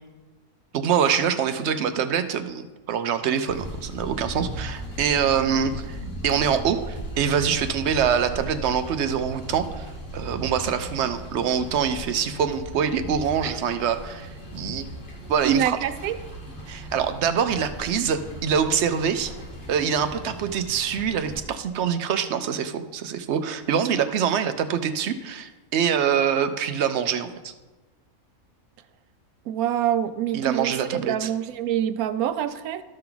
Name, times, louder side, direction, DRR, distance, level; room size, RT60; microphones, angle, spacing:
voice 1, 0.7-6.0 6.2-14.9 15.3-15.8 16.7-19.3 19.7-27.5 30.3-31.3, right 7 dB, 65° right, 9 dB, 0.7 m, -25 dB
sound 1, 3.5-21.4, right 1 dB, 40° left, 1.6 m, -37 dB
voice 2, 15.4-16.2 29.5-32.8, right 10 dB, 85° right, 11 dB, 1.0 m, -26 dB
13.0 x 5.8 x 3.8 m, 1.2 s
omnidirectional pair, 1.5 m